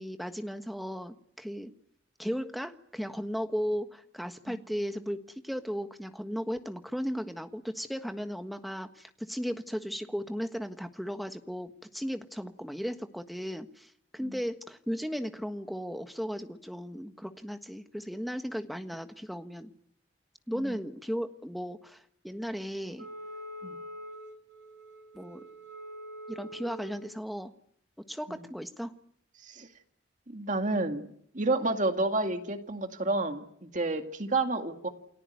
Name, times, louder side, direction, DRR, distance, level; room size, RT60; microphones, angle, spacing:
voice 1, 0.0-1.7 2.2-19.7 20.5-23.1 25.1-25.4 26.3-27.5 28.1-28.9, equal, ahead, 7 dB, 1.5 m, -36 dB
Wind instrument woodwind instrument, 23.0-27.1, equal, 90° right, 4.8 m, -44 dB
voice 2, 30.3-31.1 31.3-34.9, right 2 dB, 45° right, 6 dB, 2.2 m, -30 dB
29.0 x 18.5 x 9.4 m, 0.70 s
head